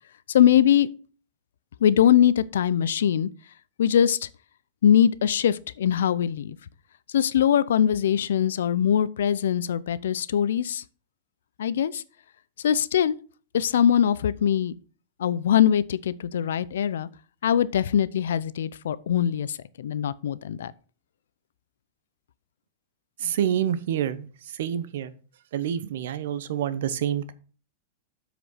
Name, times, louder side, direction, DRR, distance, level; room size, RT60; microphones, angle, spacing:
voice 1, 0.3-0.9 1.8-3.3 3.8-4.3 4.8-6.6 7.1-10.8 11.6-12.0 12.6-13.2 13.5-14.7 15.2-17.1 17.4-20.7, left 9 dB, 90° left, 0.6 m, -22 dB
voice 2, 23.2-25.1 25.5-27.3, right 10 dB, 65° right, 0.9 m, -27 dB
7.9 x 5.1 x 5.6 m
supercardioid pair, 165°, 0 cm